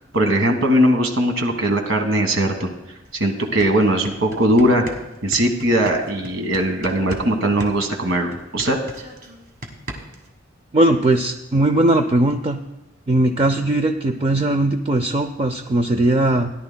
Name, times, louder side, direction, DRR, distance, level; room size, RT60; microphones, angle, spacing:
voice 1, 0.1-2.7 3.2-4.8 5.2-8.8, right 1 dB, 80° right, 4 dB, 1.4 m, -19 dB
sound 1, 3.0-3.1 3.4-7.3 7.6-10.3, equal, 45° right, 1.5 m, -36 dB
voice 2, 10.7-12.6 13.1-16.5, right 1 dB, 30° right, 6 dB, 0.4 m, -19 dB
17.5 x 11.0 x 2.2 m, 0.99 s
head